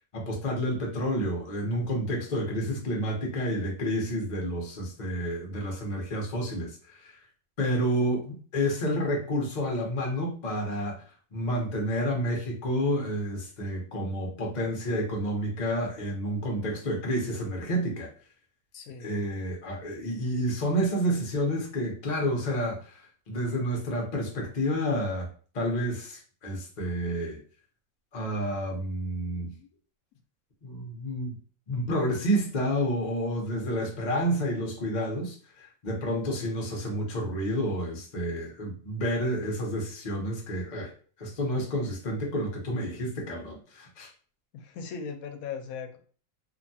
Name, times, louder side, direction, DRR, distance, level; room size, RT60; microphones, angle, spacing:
voice 1, 0.1-7.2 7.6-11.0 11.3-18.1 19.0-25.3 25.5-27.4 28.1-29.5 30.6-31.4 31.7-40.9 41.2-44.1, equal, 40° left, 0 dB, 0.7 m, -30 dB
voice 2, 18.7-19.1 29.3-29.7 44.5-46.0, left 6 dB, 75° left, 5 dB, 1.0 m, -39 dB
3.0 x 2.1 x 2.6 m, 0.42 s
omnidirectional pair, 1.6 m